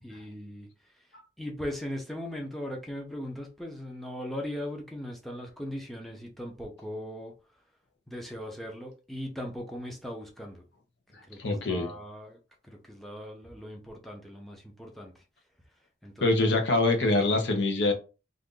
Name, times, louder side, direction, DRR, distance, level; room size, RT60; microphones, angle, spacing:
voice 1, 0.0-0.7 1.4-7.3 8.1-10.6 11.3-12.4 12.6-15.1 16.0-16.3, left 1 dB, ahead, 0.6 m, -39 dB
voice 2, 11.4-11.9 16.2-17.9, left 2 dB, 80° left, 0.8 m, -24 dB
2.6 x 2.5 x 3.7 m
head